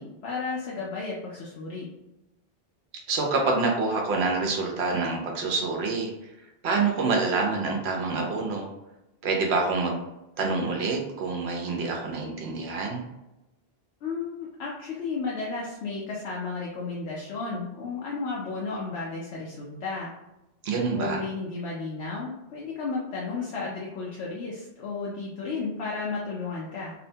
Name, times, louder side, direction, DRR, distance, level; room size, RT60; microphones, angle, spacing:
voice 1, 0.0-1.9 14.0-20.1 20.7-26.9, left 4 dB, 85° left, -4 dB, 0.8 m, -33 dB
voice 2, 3.1-6.1 6.6-8.7 9.2-10.0 10.4-13.0 20.6-21.2, right 3 dB, 80° right, 1 dB, 0.9 m, -26 dB
2.7 x 2.1 x 2.6 m, 0.94 s
omnidirectional pair, 1.1 m